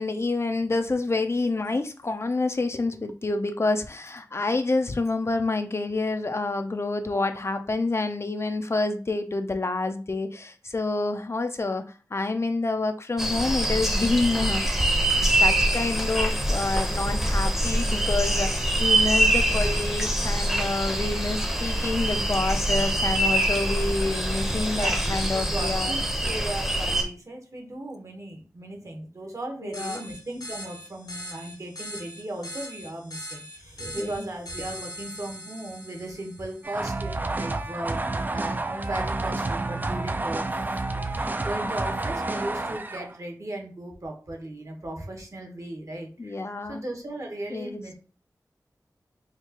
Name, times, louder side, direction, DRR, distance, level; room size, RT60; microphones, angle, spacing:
voice 1, 0.0-11.8 12.1-14.8 15.2-25.9 29.6-30.0 34.0-34.2 46.2-46.8 47.5-47.8, left 3 dB, 40° left, 7 dB, 0.4 m, -28 dB
sound 1, 13.2-27.0, right 1 dB, 5° right, 0.7 m, -24 dB
voice 2, 24.6-25.2 25.5-47.9, right 1 dB, 50° right, 1 dB, 1.1 m, -37 dB
sound 2, 29.7-36.9, equal, 75° left, 1.1 m, -41 dB
sound 3, 36.6-43.2, right 2 dB, 25° right, 0.3 m, -29 dB
4.4 x 2.3 x 2.9 m, 0.36 s
wide cardioid pair, 60°, 7 cm